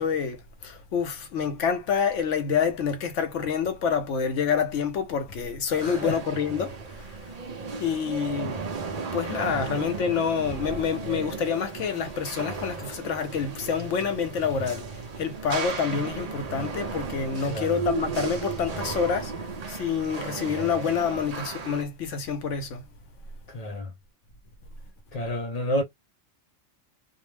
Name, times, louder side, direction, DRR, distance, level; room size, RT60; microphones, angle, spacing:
voice 1, 0.0-7.1 7.8-8.6 9.1-22.8, left 6 dB, 85° left, 1.0 m, -27 dB
sound 1, 5.7-21.8, right 5 dB, 45° right, 0.6 m, -35 dB
voice 2, 5.8-6.2 9.9-10.1 17.4-17.8 23.5-23.9 25.1-25.8, left 1 dB, 45° left, 0.6 m, -30 dB
2.5 x 2.0 x 3.2 m
omnidirectional pair, 1.2 m